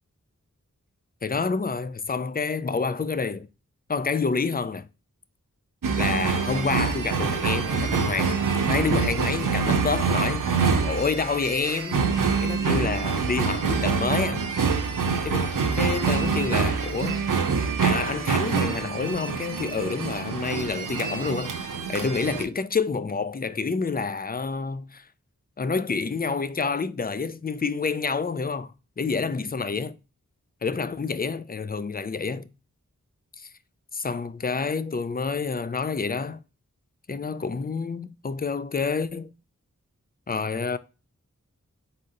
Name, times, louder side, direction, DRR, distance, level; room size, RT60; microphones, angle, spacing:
voice 1, 1.2-3.5 3.9-4.9 6.0-8.4 8.7-10.5 10.8-12.1 12.4-14.4 15.2-17.3 17.8-21.5 21.9-25.0 25.6-28.7 29.0-30.0 30.6-32.5 33.4-33.5 33.9-36.4 37.1-39.3 40.3-40.8, left 4 dB, 30° left, 0.4 m, -28 dB
sound 1, 5.8-22.4, right 5 dB, 90° right, 0.6 m, -25 dB
4.1 x 3.7 x 2.6 m
wide cardioid pair, 50°, 32 cm